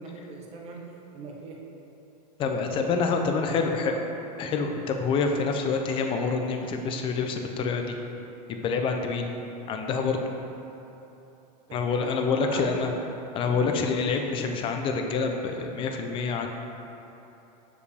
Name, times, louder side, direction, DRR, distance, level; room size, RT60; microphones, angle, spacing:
voice 1, 0.0-1.6 2.4-4.0 11.7-12.9 13.4-13.7, right 3 dB, 30° right, -1 dB, 0.9 m, -41 dB
voice 2, 2.4-3.9 4.4-7.9 8.5-9.3 9.7-10.2 11.7-12.9 13.3-16.5, left 4 dB, 25° left, 4 dB, 0.5 m, -27 dB
6.5 x 5.0 x 3.4 m, 3.0 s
supercardioid pair, 145°, 21 cm